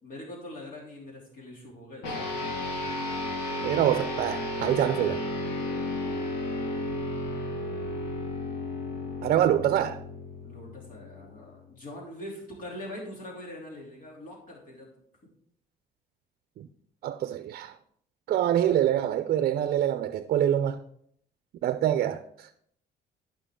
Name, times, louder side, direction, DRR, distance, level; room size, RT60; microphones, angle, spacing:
voice 1, 0.0-2.3 10.4-14.9, left 1 dB, 55° left, 3.2 m, -43 dB
sound 1, 2.0-11.7, left 1 dB, 85° left, 2.1 m, -33 dB
voice 2, 3.6-5.2 9.2-10.0 16.6-16.7 17.0-17.7 18.3-20.8 21.6-22.5, right 11 dB, 60° right, 0.6 m, -25 dB
13.5 x 5.8 x 3.7 m
cardioid pair, 110°, 17 cm